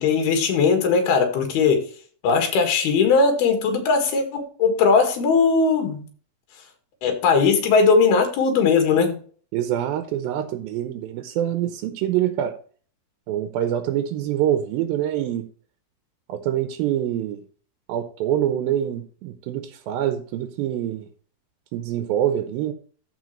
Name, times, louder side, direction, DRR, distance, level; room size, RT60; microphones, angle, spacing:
voice 1, 0.0-1.9 2.2-6.1 7.0-9.2, left 5 dB, 75° left, 3.6 m, -19 dB
voice 2, 9.5-12.6 13.3-15.5 16.3-17.4 17.9-21.1 21.7-22.7, right 11 dB, 75° right, 2.4 m, -25 dB
14.5 x 5.0 x 3.1 m
omnidirectional pair, 4.6 m